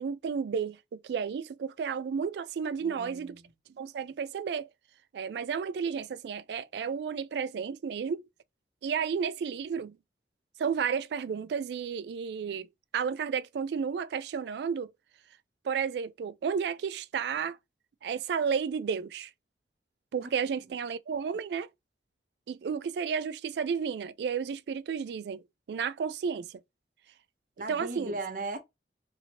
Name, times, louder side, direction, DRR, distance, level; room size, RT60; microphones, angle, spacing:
voice 1, 0.0-3.4 3.8-4.7 5.1-8.3 8.8-9.9 10.6-12.7 12.9-14.9 15.6-17.6 18.0-19.3 20.1-21.7 22.5-26.6 27.7-28.2, right 6 dB, 70° right, 0.3 m, -32 dB
voice 2, 2.8-3.5 20.2-20.3 27.6-28.6, right 2 dB, 50° right, 0.7 m, -38 dB
2.8 x 2.7 x 2.7 m
head